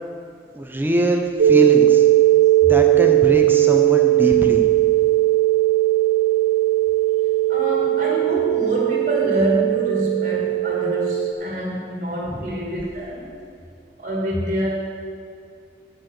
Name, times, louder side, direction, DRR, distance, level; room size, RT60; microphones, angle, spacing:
voice 1, 0.5-2.0 2.6-4.6 12.3-12.5, right 1 dB, 10° right, 3 dB, 0.8 m, -22 dB
sound 1, 1.4-11.3, right 15 dB, 75° right, 0.5 m, -18 dB
voice 2, 7.5-13.3 14.0-14.7, right 1 dB, 45° right, -2 dB, 2.3 m, -25 dB
11.0 x 6.0 x 6.7 m, 2.4 s
head